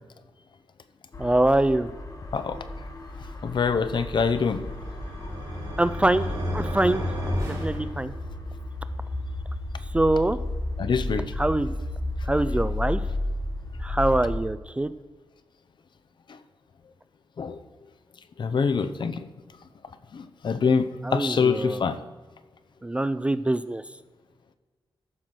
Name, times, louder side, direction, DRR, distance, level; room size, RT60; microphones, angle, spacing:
sound 1, 1.1-14.4, left 1 dB, 40° left, 1.5 m, -33 dB
voice 1, 1.2-1.9 5.8-6.3 6.5-7.2 7.6-8.1 9.9-10.4 11.4-11.7 12.3-13.0 13.8-14.9 21.0-21.8 22.8-23.8, right 1 dB, 15° right, 13 dB, 0.3 m, -24 dB
voice 2, 3.4-4.6 10.8-11.2 17.4-17.6 18.4-19.2 20.1-20.8 21.1-22.0, left 5 dB, 60° left, 11 dB, 0.7 m, -24 dB
sound 2, 4.2-8.6, equal, 40° right, 4.2 m, -33 dB
14.0 x 5.8 x 6.2 m, 1.3 s
wide cardioid pair, 165°, 9 cm